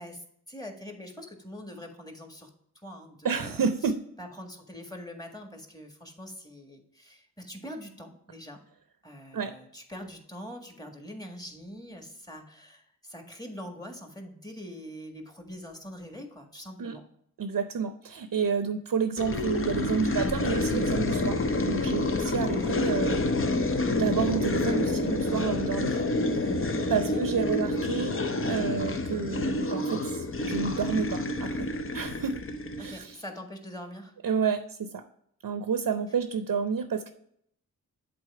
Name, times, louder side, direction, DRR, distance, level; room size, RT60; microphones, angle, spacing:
voice 1, 0.0-2.5 2.8-3.6 4.2-8.6 9.0-17.0 22.5-22.7 26.9-27.2 32.8-34.1, equal, 10° left, 3 dB, 1.7 m, -43 dB
voice 2, 3.2-4.0 9.3-9.6 16.8-17.0 17.4-23.4 24.0-26.0 26.3-28.2 28.4-32.3 32.8-33.2 34.2-35.0 35.4-37.1, right 6 dB, 60° right, 9 dB, 0.7 m, -30 dB
sound 1, 19.2-33.0, left 2 dB, 35° left, 0.7 m, -28 dB
7.8 x 4.0 x 4.8 m, 0.69 s
cardioid pair, 45°, 37 cm